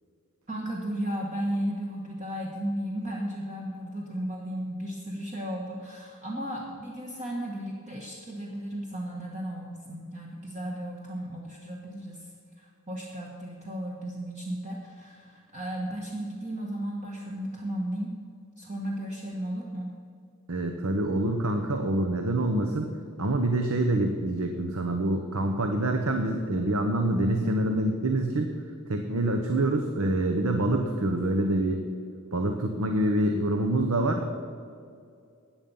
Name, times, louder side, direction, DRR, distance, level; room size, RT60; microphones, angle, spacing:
voice 1, 0.5-18.1 18.6-19.9, right 1 dB, 35° right, -2 dB, 1.3 m, -34 dB
voice 2, 20.5-22.9 23.2-28.5 28.9-31.8 32.3-34.3, right 1 dB, 75° right, 5 dB, 1.0 m, -26 dB
14.0 x 9.2 x 5.5 m, 2.4 s
head